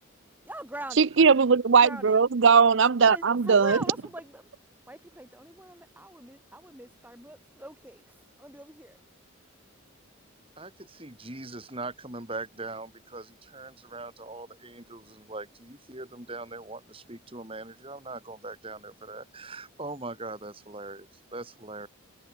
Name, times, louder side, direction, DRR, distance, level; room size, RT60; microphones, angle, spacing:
voice 1, 0.5-1.1 1.8-2.2 3.0-4.5 4.9-8.9, right 1 dB, 10° right, 7.4 m, -42 dB
voice 2, 1.0-3.8, right 5 dB, 60° right, 0.6 m, -19 dB
voice 3, 10.6-21.9, right 2 dB, 25° right, 4.9 m, -41 dB
head